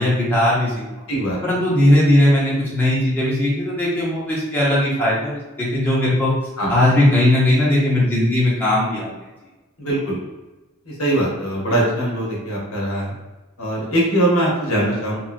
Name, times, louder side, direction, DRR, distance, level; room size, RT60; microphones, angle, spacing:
voice 1, 0.0-1.0 1.4-6.3 6.7-9.1, left 1 dB, 10° left, -8 dB, 0.9 m, -18 dB
voice 2, 6.6-6.9 9.8-10.2 10.8-13.1 13.6-15.2, right 1 dB, 75° left, -3 dB, 0.9 m, -21 dB
3.0 x 2.5 x 2.5 m, 1.1 s
head